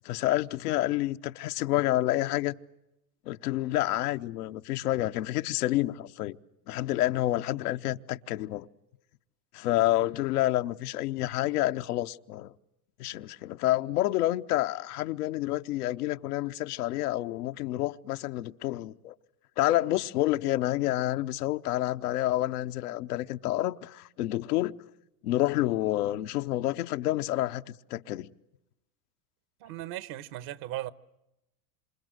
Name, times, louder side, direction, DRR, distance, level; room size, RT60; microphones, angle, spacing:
voice 1, 0.0-2.5 3.3-6.4 6.7-8.7 9.5-12.5 13.0-19.1 19.6-24.8 25.2-28.3, left 15 dB, 85° left, 0.9 m, -29 dB
voice 2, 29.6-30.9, right 14 dB, 55° right, 1.2 m, -37 dB
27.0 x 26.5 x 7.8 m
supercardioid pair, 110°, 45 cm